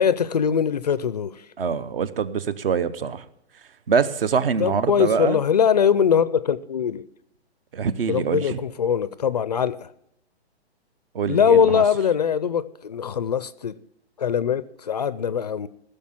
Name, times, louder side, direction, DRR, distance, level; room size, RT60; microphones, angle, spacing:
voice 1, 0.0-1.4 4.6-7.0 8.1-9.9 11.3-13.7 14.2-15.7, left 7 dB, 40° left, 0.4 m, -22 dB
voice 2, 1.6-3.2 3.9-5.4 7.7-8.6 11.1-11.8, right 6 dB, 55° right, 1.0 m, -24 dB
16.5 x 6.7 x 7.2 m
hypercardioid pair, 160°, 33 cm